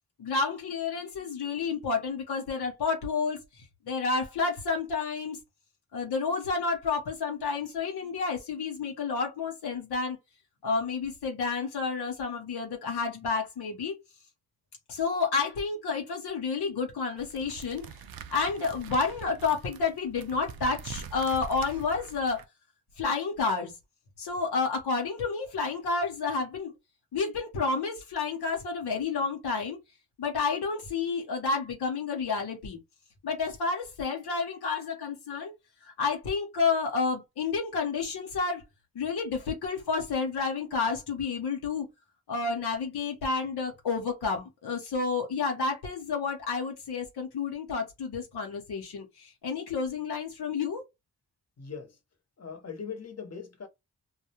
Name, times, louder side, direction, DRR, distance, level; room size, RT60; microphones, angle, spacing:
voice 1, 0.2-5.4 5.9-10.2 10.6-13.9 14.9-18.0 18.3-22.4 23.0-23.7 24.2-26.7 27.1-29.8 30.2-32.8 33.2-35.5 35.8-38.6 38.9-41.9 42.3-50.8, left 4 dB, 80° left, 0.8 m, -30 dB
sound 1, 17.2-22.5, right 6 dB, 70° right, 0.5 m, -44 dB
voice 2, 51.6-52.0 52.4-53.7, left 6 dB, 40° left, 1.0 m, -40 dB
2.3 x 2.1 x 2.8 m
cardioid pair, 45°, 38 cm